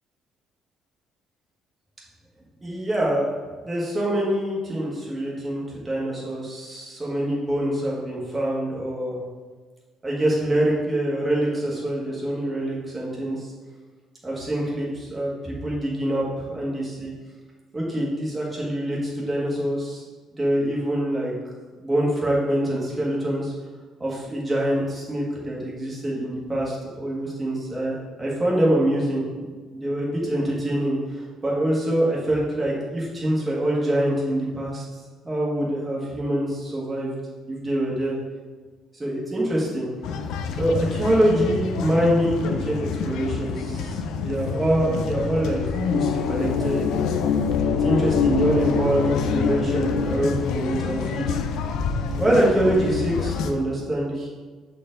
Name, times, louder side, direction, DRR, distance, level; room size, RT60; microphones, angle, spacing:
voice 1, 2.6-3.3 3.6-9.2 10.0-13.5 14.2-17.1 17.7-20.0 20.4-21.3 21.8-23.5 24.0-29.2 29.7-34.8 35.2-37.1 37.5-38.2 38.9-39.9 40.5-45.6 45.9-47.0 47.8-51.4 52.2-54.3, right 1 dB, 15° right, -4 dB, 1.5 m, -25 dB
sound 1, 40.0-53.5, left 5 dB, 65° left, 0.5 m, -26 dB
7.4 x 4.4 x 3.8 m, 1.4 s
cardioid pair, 175°, 0 cm